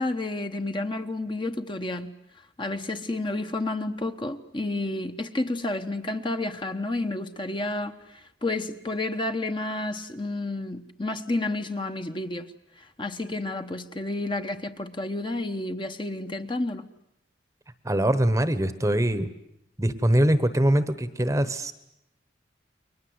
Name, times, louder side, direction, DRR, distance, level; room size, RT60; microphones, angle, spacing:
voice 1, 0.0-2.1 2.6-16.9, left 2 dB, 25° left, 1.0 m, -30 dB
voice 2, 17.8-19.3 19.8-21.7, right 1 dB, 15° right, 1.1 m, -23 dB
30.0 x 22.5 x 8.0 m
head